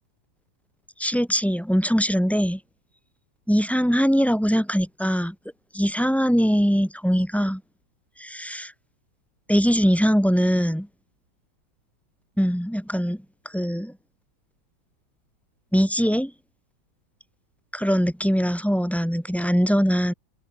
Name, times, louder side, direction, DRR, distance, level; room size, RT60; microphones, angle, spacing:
voice 1, 1.0-2.6 3.5-5.4 5.7-7.6 8.2-8.7 9.5-10.9 12.4-13.9 15.7-16.3 17.7-20.1, equal, ahead, 7.7 m, -22 dB
omnidirectional pair, 2.1 m